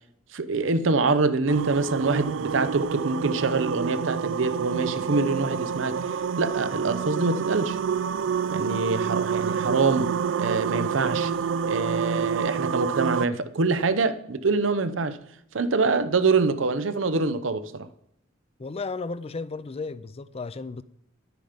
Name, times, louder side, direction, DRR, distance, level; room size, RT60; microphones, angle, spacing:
voice 1, 0.3-6.0 6.4-7.8 8.5-10.1 10.4-11.3 11.6-15.2 15.5-17.9, right 3 dB, 90° right, 0.8 m, -25 dB
sound 1, 1.5-13.3, right 6 dB, 70° right, 0.4 m, -28 dB
voice 2, 18.6-20.8, left 4 dB, 30° left, 0.4 m, -34 dB
10.5 x 9.2 x 5.1 m
head